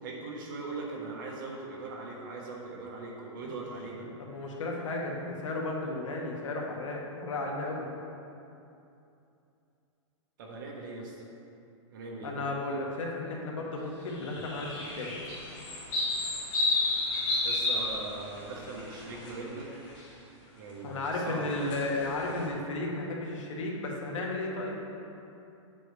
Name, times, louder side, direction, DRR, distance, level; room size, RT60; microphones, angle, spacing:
voice 1, 0.0-4.1 10.4-11.2 11.9-12.3 17.4-19.7 20.6-21.5, right 3 dB, 40° right, -2 dB, 1.3 m, -40 dB
voice 2, 4.2-7.9 12.2-15.1 20.8-24.8, left 2 dB, 75° left, -1 dB, 1.6 m, -34 dB
sound 1, 14.1-19.3 19.6-20.0 21.2-22.4, left 2 dB, 25° left, 1.6 m, -31 dB
9.4 x 7.6 x 3.4 m, 2.7 s
supercardioid pair, 175°, 16 cm